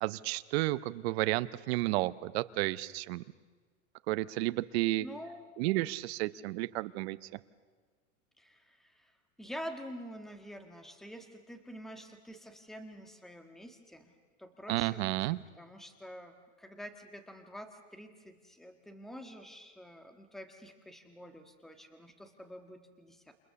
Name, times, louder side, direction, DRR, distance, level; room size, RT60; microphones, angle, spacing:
voice 1, 0.0-3.2 4.1-5.1 5.6-7.2 14.7-15.4, right 19 dB, 50° right, 15 dB, 0.9 m, -32 dB
voice 2, 5.0-5.4 8.4-9.1 9.4-14.1 14.4-23.3, equal, ahead, 6 dB, 1.6 m, -47 dB
29.5 x 28.5 x 7.0 m, 1.5 s
supercardioid pair, 150°, 39 cm